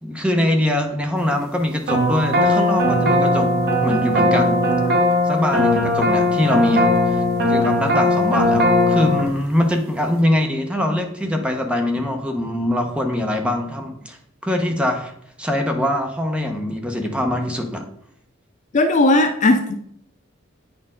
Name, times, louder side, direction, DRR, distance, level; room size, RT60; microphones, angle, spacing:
voice 1, 0.0-3.5 3.8-4.7 5.2-7.2 7.5-15.1 15.4-17.8, left 1 dB, 5° right, 0.8 m, -23 dB
sound 1, 1.9-9.2, left 1 dB, 50° right, 1.2 m, -18 dB
voice 2, 18.7-19.8, left 2 dB, 35° left, 0.4 m, -16 dB
9.2 x 4.5 x 3.6 m
head